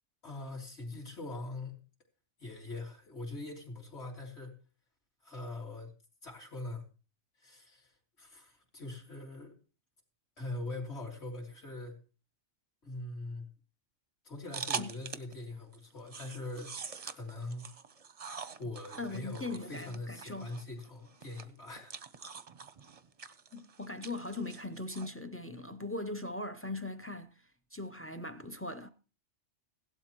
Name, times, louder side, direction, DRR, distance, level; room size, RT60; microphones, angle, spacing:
voice 1, 0.2-1.8 2.4-4.5 5.2-5.9 6.2-6.9 7.4-7.9 8.2-9.5 10.4-12.0 12.8-13.5 14.2-16.7 17.0-17.7 18.6-21.9, left 2 dB, 60° left, 3.5 m, -42 dB
sound 1, 14.5-15.4 15.7-25.1, right 6 dB, 40° right, 0.6 m, -44 dB
voice 2, 19.0-20.5 23.5-27.3 27.7-28.9, left 2 dB, 20° left, 0.4 m, -40 dB
16.5 x 12.0 x 3.0 m
omnidirectional pair, 1.3 m